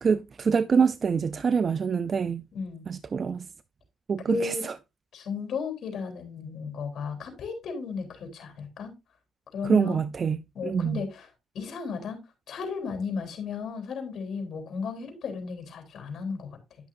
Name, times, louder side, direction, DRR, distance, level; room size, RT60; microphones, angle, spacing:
voice 1, 0.0-2.4 2.9-3.5 4.1-4.8 9.6-11.0, right 6 dB, 45° right, 0.4 m, -25 dB
voice 2, 4.3-4.6 5.1-9.0 9.5-10.0 10.5-11.3 11.5-12.2 12.5-16.5, left 5 dB, 65° left, 3.3 m, -34 dB
11.0 x 6.3 x 2.6 m
cardioid pair, 90°, 0 cm